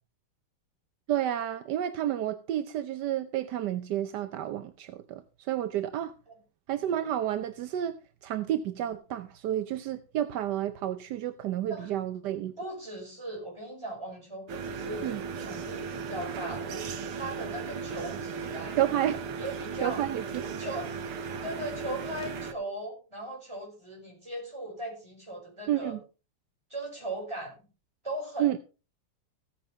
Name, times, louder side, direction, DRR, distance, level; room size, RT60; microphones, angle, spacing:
voice 1, 1.1-6.1 6.7-8.0 8.2-12.5 15.0-15.2 18.8-19.2 19.8-20.4 25.7-26.0 28.4-28.6, right 11 dB, 65° right, 1.1 m, -30 dB
voice 2, 12.6-18.8 19.4-20.0 20.6-20.9 21.4-26.0 26.7-27.6 28.0-28.6, right 1 dB, 10° right, 5.6 m, -38 dB
sound 1, 14.5-22.5, right 5 dB, 85° right, 2.1 m, -36 dB
15.0 x 9.5 x 3.4 m
omnidirectional pair, 2.4 m